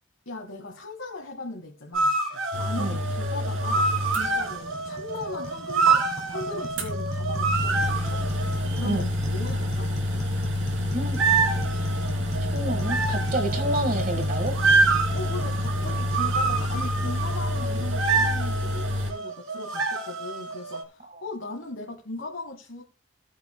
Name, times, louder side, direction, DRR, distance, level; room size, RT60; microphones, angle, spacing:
voice 1, 0.2-2.1 2.6-8.2 8.7-10.0 15.1-22.8, left 2 dB, 70° left, 1.6 m, -38 dB
sound 1, 1.9-8.9 11.2-20.8, right 4 dB, 85° right, 2.0 m, -27 dB
sound 2, 2.5-4.8 5.2-5.3 5.9-6.0 6.8-19.1, left 1 dB, 70° right, 2.9 m, -28 dB
sound 3, 3.6-18.7, left 1 dB, 30° left, 1.1 m, -39 dB
voice 2, 12.4-14.9, right 1 dB, 40° right, 1.6 m, -29 dB
17.0 x 8.1 x 2.2 m
head